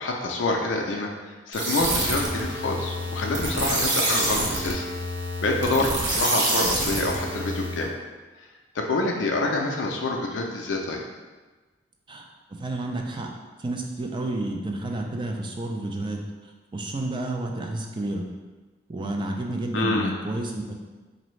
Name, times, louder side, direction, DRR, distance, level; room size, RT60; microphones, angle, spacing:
voice 1, 0.0-4.8 5.4-7.9 8.7-11.0 19.7-20.1, left 2 dB, 75° left, 1 dB, 0.4 m, -27 dB
sound 1, 1.5-7.9, right 1 dB, 65° right, 0.7 m, -27 dB
voice 2, 12.6-13.3 13.6-16.2 16.7-18.2 18.9-20.7, right 2 dB, 25° right, 2 dB, 0.4 m, -30 dB
4.0 x 2.6 x 3.1 m, 1.3 s
head